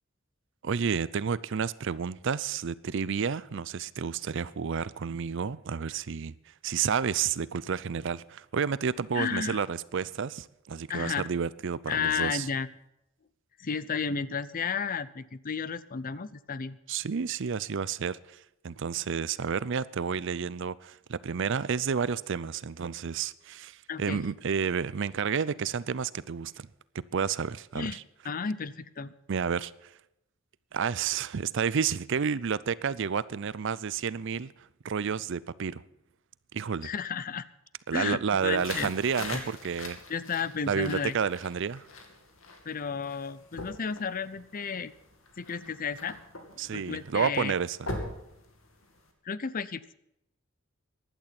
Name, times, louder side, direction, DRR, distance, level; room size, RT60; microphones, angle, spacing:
voice 1, 0.6-6.3 6.6-12.5 16.9-18.2 18.6-26.7 26.9-28.0 29.3-29.9 30.7-34.5 34.8-35.8 36.5-36.9 37.9-40.0 40.7-41.9 46.6-47.9, right 6 dB, 65° right, 0.5 m, -30 dB
voice 2, 9.1-9.6 10.9-11.3 11.9-12.7 13.6-16.8 23.9-24.2 27.7-28.0 28.2-29.1 36.8-37.4 37.9-38.9 39.3-39.4 40.1-41.2 42.7-44.9 45.4-46.5 46.7-47.5 49.2-49.9, left 6 dB, 45° left, 0.6 m, -33 dB
sound 1, 38.4-49.1, left 2 dB, 80° left, 2.6 m, -43 dB
15.5 x 11.5 x 5.9 m
head